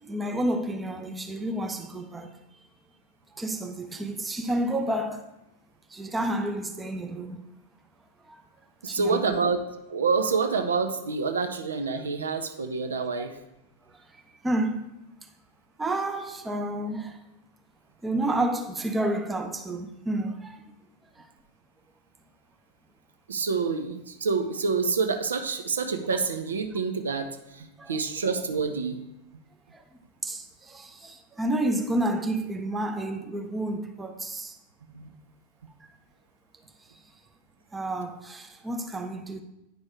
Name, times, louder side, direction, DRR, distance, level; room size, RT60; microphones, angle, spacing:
voice 1, 0.0-2.4 3.4-5.2 5.9-7.4 8.3-8.4 8.9-9.4 13.2-13.3 14.4-14.9 15.8-17.2 18.0-20.6 21.2-21.3 27.8-28.0 29.7-29.8 30.2-34.5 37.7-39.4, right 1 dB, 10° right, 0.6 m, -30 dB
voice 2, 8.8-9.6 9.9-13.3 23.3-29.0 34.9-35.1, right 4 dB, 70° right, 0.6 m, -27 dB
9.1 x 5.3 x 3.4 m
figure-of-eight pair, 90°, 0 cm